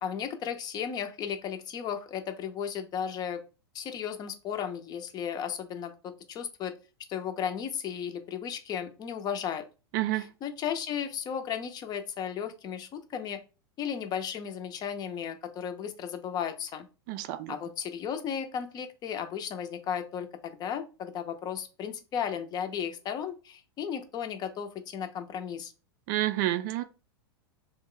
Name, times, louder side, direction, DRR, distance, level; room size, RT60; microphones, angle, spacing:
voice 1, 0.0-3.4 3.7-6.7 7.1-9.7 10.1-13.4 13.8-16.9 17.5-25.7, left 8 dB, 30° left, 0.6 m, -35 dB
voice 2, 17.1-17.5 26.1-26.8, right 15 dB, 50° right, 0.4 m, -29 dB
3.0 x 2.2 x 3.7 m
hypercardioid pair, 110°, 13 cm